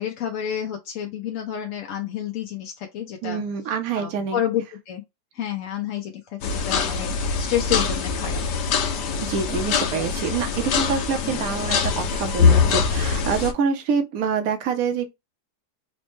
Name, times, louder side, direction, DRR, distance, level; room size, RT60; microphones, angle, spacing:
voice 1, 0.0-3.4 3.9-5.0 5.3-8.7, left 10 dB, 65° left, 0.9 m, -29 dB
voice 2, 3.2-4.4 9.2-15.1, right 6 dB, 65° right, 1.2 m, -26 dB
sound 1, 6.4-13.5, left 5 dB, 85° left, 1.4 m, -23 dB
4.2 x 2.2 x 3.0 m
omnidirectional pair, 1.8 m